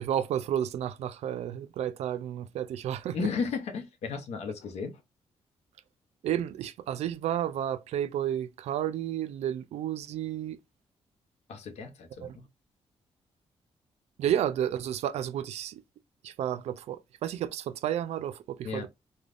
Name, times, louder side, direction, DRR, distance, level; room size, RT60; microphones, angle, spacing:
voice 1, 0.0-3.3 6.2-10.6 12.2-12.3 14.2-15.8 16.2-18.9, right 10 dB, 85° right, 0.4 m, -31 dB
voice 2, 3.1-5.0 11.5-12.5 18.6-18.9, left 5 dB, 85° left, 0.7 m, -34 dB
3.4 x 2.2 x 2.4 m
cardioid pair, 110°, 11 cm